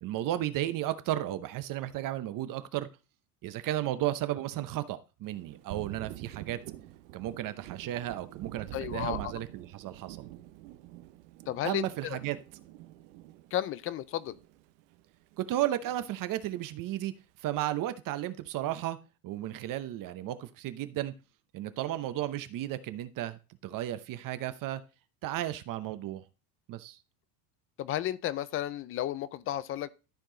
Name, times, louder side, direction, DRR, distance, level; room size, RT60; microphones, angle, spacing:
voice 1, 0.0-2.9 3.4-6.6 7.1-10.3 11.6-12.4 15.4-17.1 17.4-19.0 19.2-21.1 21.5-24.8 25.2-26.2 26.7-27.0, right 13 dB, 45° right, 0.8 m, -34 dB
Thunder, 5.2-15.0 15.3-16.5, right 14 dB, 80° right, 0.9 m, -46 dB
voice 2, 8.7-9.3 11.5-12.2 13.5-14.4 27.8-29.9, left 12 dB, 30° left, 0.3 m, -33 dB
13.0 x 4.5 x 3.8 m
supercardioid pair, 135°, 48 cm